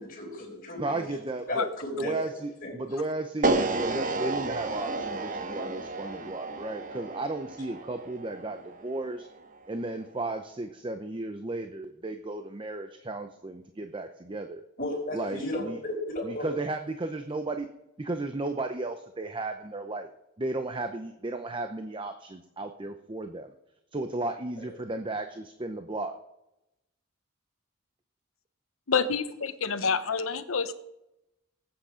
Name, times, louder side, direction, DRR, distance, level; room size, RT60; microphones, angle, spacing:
voice 1, 0.0-1.0 1.5-2.2 2.6-2.7 14.8-16.5 24.6-24.7, left 1 dB, 45° left, -8 dB, 5.3 m, -34 dB
voice 2, 0.8-1.7 2.0-9.3 9.7-14.6 15.1-15.8 16.2-17.7 18.0-20.1 20.4-23.5 23.9-26.2, right 2 dB, 25° right, 7 dB, 0.7 m, -34 dB
sound 1, 3.4-9.6, right 2 dB, 40° right, 1.0 m, -32 dB
voice 3, 28.9-30.7, left 5 dB, 85° left, 12 dB, 0.9 m, -27 dB
19.0 x 8.9 x 5.0 m, 0.90 s
head